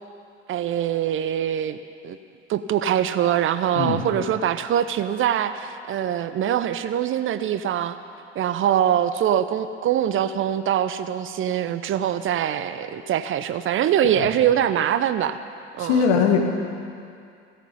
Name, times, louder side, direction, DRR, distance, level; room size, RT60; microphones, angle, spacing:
voice 1, 0.5-2.2 2.5-8.0 8.4-15.4 15.8-16.1, right 10 dB, 35° right, 12 dB, 0.7 m, -23 dB
voice 2, 15.8-16.4, left 6 dB, 60° left, 2 dB, 2.0 m, -20 dB
17.0 x 13.0 x 5.5 m, 2.4 s
figure-of-eight pair, 65°, 35 cm